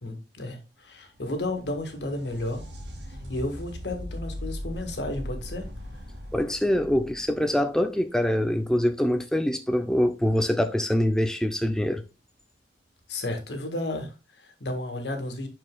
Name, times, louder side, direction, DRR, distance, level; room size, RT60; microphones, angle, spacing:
voice 1, 0.0-2.7 3.1-5.7 13.1-15.5, left 1 dB, 70° left, 1.6 m, -33 dB
sound 1, 0.9-8.5 11.8-11.9 13.0-13.1, equal, 65° right, 2.1 m, -40 dB
voice 2, 6.3-12.0, left 1 dB, 5° left, 0.4 m, -24 dB
11.0 x 4.5 x 2.2 m
head